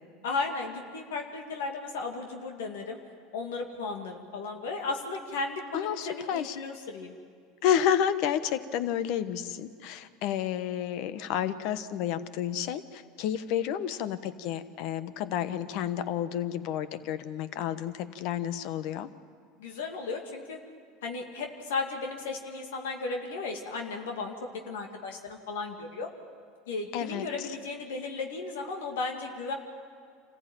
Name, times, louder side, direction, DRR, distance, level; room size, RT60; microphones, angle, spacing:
voice 1, 0.2-3.0 3.3-7.1 19.6-20.6 21.0-24.3 24.7-26.1 26.7-29.5, left 3 dB, 85° left, 3 dB, 2.3 m, -35 dB
voice 2, 5.7-6.6 7.6-19.1 26.9-27.3, left 9 dB, 65° left, 13 dB, 1.2 m, -30 dB
26.5 x 15.0 x 9.0 m, 2.2 s
supercardioid pair, 100°, 0 cm